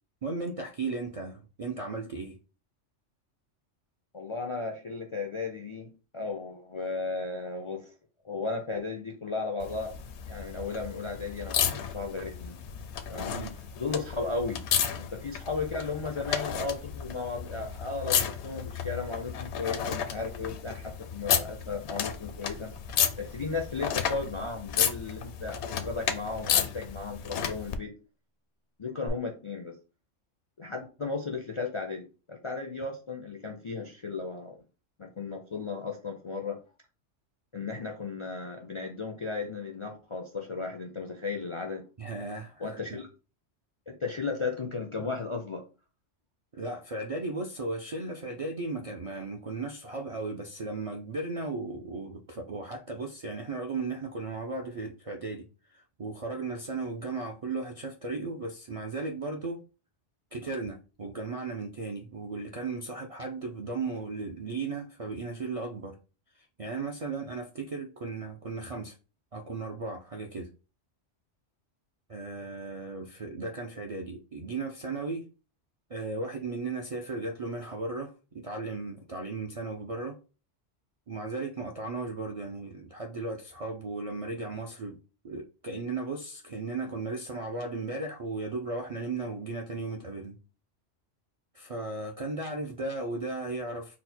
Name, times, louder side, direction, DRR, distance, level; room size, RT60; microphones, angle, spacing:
voice 1, 0.2-2.4 13.3-13.6 42.0-43.0 46.5-55.5 55.7-59.6 60.3-66.0 66.3-68.9 69.3-70.5 72.1-75.3 75.9-80.2 81.1-85.0 85.2-90.4 91.5-94.0, right 3 dB, 55° right, 0.4 m, -36 dB
voice 2, 4.1-7.9 8.2-9.9 10.3-12.6 13.1-13.3 13.8-14.6 15.0-22.7 23.2-27.9 28.8-29.8 30.6-34.6 35.0-36.6 37.5-41.8 42.6-43.1 43.9-45.6, left 4 dB, 50° left, 0.3 m, -35 dB
sound 1, 9.6-27.8 29.1-29.2, left 8 dB, 70° left, 0.8 m, -32 dB
4.1 x 2.1 x 4.2 m
omnidirectional pair, 1.2 m